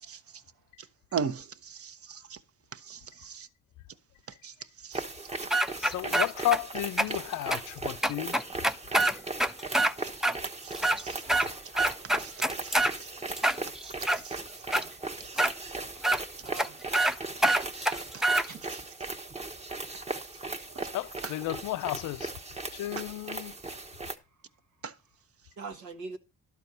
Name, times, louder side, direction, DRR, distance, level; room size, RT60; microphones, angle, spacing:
voice 1, 1.1-2.4 2.7-3.5 4.4-4.5 4.8-5.0 5.4-5.5 10.6-11.2 12.2-12.9 13.8-13.9 14.2-14.4 15.3-15.4 18.1-18.2 18.7-18.8 20.8-20.9 21.2-21.3 24.8-24.9, right 6 dB, 50° right, 1.0 m, -38 dB
sound 1, 4.9-24.2, right 2 dB, 20° right, 1.1 m, -38 dB
sound 2, 5.5-6.6 7.0-7.1 7.5-7.6 8.0-9.9 10.2-10.4 10.7-11.5 11.8-12.9 13.4-14.2 14.7-14.8 15.4-15.5 16.0-16.2 16.6-16.7 16.9-17.1 17.4-18.5, right 1 dB, ahead, 0.5 m, -25 dB
voice 2, 5.8-8.4 20.9-22.3 22.7-23.5, left 15 dB, 85° left, 0.6 m, -32 dB
voice 3, 16.4-16.7 18.4-19.1 25.6-26.2, right 4 dB, 85° right, 1.5 m, -43 dB
12.0 x 4.5 x 6.8 m
cardioid pair, 90°, 30 cm